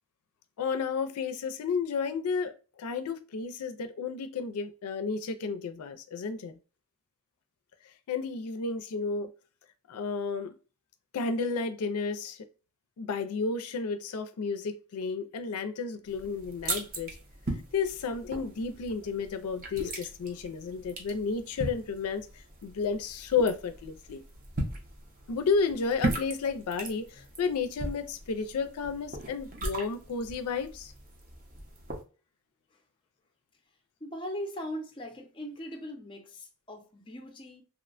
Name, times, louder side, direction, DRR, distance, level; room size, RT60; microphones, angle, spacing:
voice 1, 0.6-6.5 8.1-9.3 9.9-10.6 11.1-12.5 13.0-17.1 17.7-24.2 25.3-30.9, left 5 dB, 85° left, 0.4 m, -32 dB
sound 1, 16.1-32.0, right 2 dB, 40° right, 0.6 m, -39 dB
voice 2, 34.0-37.6, equal, 20° left, 0.5 m, -40 dB
2.9 x 2.1 x 2.4 m
head